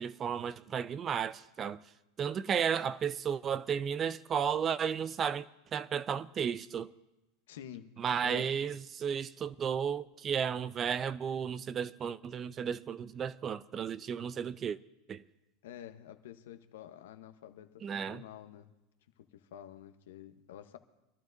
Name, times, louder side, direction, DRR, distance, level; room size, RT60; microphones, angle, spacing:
voice 1, 0.0-1.8 2.2-6.9 8.0-14.8 15.1-15.2 17.8-18.2, right 7 dB, 35° right, 0.5 m, -33 dB
voice 2, 7.5-7.9 8.2-8.5 15.6-18.7 19.2-20.8, left 11 dB, 75° left, 0.9 m, -49 dB
25.0 x 12.5 x 2.6 m
hypercardioid pair, 95°, 0 cm